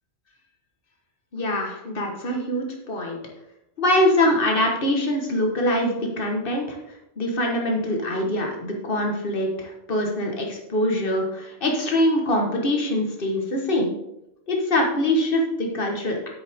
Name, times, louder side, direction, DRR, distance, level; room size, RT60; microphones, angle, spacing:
voice 1, 1.3-3.2 3.8-6.8 7.2-14.0 14.5-16.3, left 1 dB, 60° left, 1 dB, 1.7 m, -23 dB
9.8 x 7.9 x 3.6 m, 0.88 s
omnidirectional pair, 1.1 m